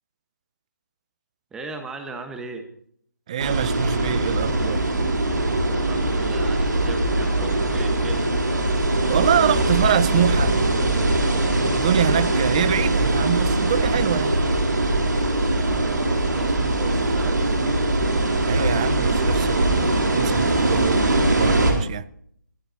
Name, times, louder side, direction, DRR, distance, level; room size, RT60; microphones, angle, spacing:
voice 1, 1.5-2.7 5.7-8.3 15.5-17.4, right 3 dB, 5° right, 1.3 m, -38 dB
voice 2, 3.3-4.9 9.1-10.6 11.7-14.4 18.4-22.1, right 10 dB, 20° right, 0.4 m, -25 dB
sound 1, 3.4-21.7, right 2 dB, 70° right, 4.0 m, -21 dB
22.5 x 11.5 x 2.8 m
figure-of-eight pair, 160°, 10 cm